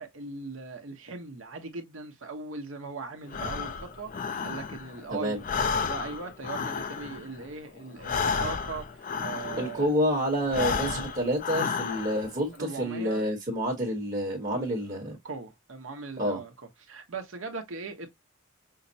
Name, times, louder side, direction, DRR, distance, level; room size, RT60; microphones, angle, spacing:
voice 1, 0.0-5.4 5.9-10.0 10.5-11.0 12.5-13.2 14.5-14.7 15.2-16.5 16.8-18.1, right 4 dB, 70° right, 1.0 m, -40 dB
Breathing, 3.3-5.0 5.3-9.9 10.4-12.3, left 5 dB, 40° left, 0.4 m, -32 dB
voice 2, 5.1-5.4 9.6-15.2 16.2-16.4, equal, 35° right, 1.2 m, -28 dB
5.6 x 2.0 x 2.7 m
head